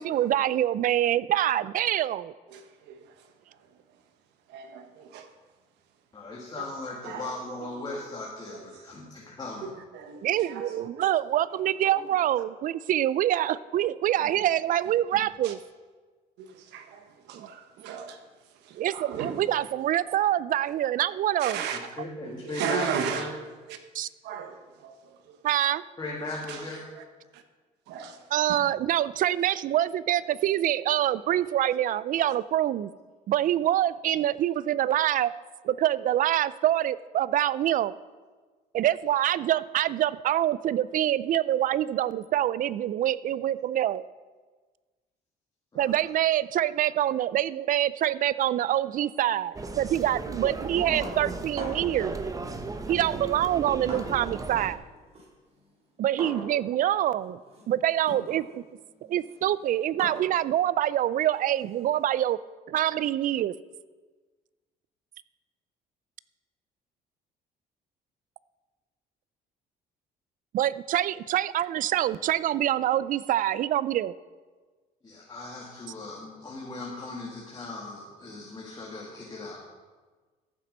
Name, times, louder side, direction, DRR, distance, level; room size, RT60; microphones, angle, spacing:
voice 1, 0.0-2.3 10.2-15.6 17.3-17.5 18.7-21.6 23.9-24.1 25.4-25.8 28.3-32.9 33.3-35.3 35.6-37.9 38.7-44.0 45.8-52.2 52.9-54.8 56.0-57.4 57.7-58.6 59.1-62.4 62.7-63.5 70.5-74.1, right 12 dB, 55° right, 18 dB, 0.4 m, -25 dB
voice 2, 2.5-4.0 4.5-5.3 6.6-6.7 7.0-8.0 8.5-8.8 9.6-11.2 11.5-12.1 12.4-12.5 13.8-13.9 14.1-14.5 15.1-15.5 16.4-19.7 21.4-21.8 22.2-23.4 23.7-23.8 24.2-25.4 26.5-27.0 27.3-27.4 27.9-28.7 31.3-31.5 32.2-32.3, right 7 dB, 90° right, 8 dB, 1.2 m, -38 dB
voice 3, 6.1-9.7 22.0-23.3 26.0-26.9 45.7-46.0 75.0-79.6, left 2 dB, 25° left, -3 dB, 2.1 m, -38 dB
sound 1, 49.5-54.7, right 3 dB, 20° right, 0.9 m, -36 dB
sound 2, 51.0-52.0 52.9-54.5 54.8-62.1, right 1 dB, 35° right, 3.6 m, -43 dB
13.5 x 7.5 x 5.3 m, 1.4 s
cardioid pair, 110°, 17 cm